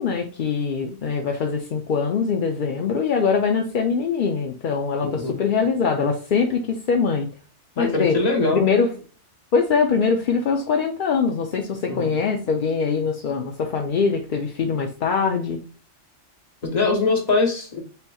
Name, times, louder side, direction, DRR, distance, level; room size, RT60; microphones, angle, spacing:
voice 1, 0.0-7.3 7.8-8.2 8.5-8.9 9.5-15.6, left 5 dB, 55° left, 2 dB, 0.6 m, -23 dB
voice 2, 5.0-5.4 7.8-8.7 11.9-12.1 16.6-17.8, left 3 dB, 35° left, 1 dB, 1.1 m, -22 dB
6.8 x 2.9 x 2.3 m, 0.39 s
omnidirectional pair, 1.3 m